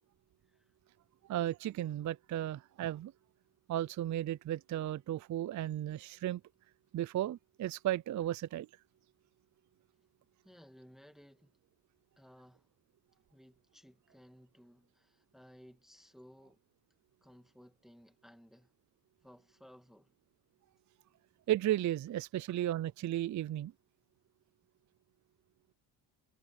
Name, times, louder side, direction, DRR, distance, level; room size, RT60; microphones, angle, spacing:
voice 1, 0.4-0.7 10.4-11.6 12.2-12.7 13.3-16.6 17.2-18.7 19.2-20.1, equal, ahead, 2.1 m, -59 dB
voice 2, 1.2-3.1 3.7-6.4 6.9-8.7 21.5-23.7, right 13 dB, 35° right, 0.5 m, -34 dB
cardioid pair, 90°, 50 cm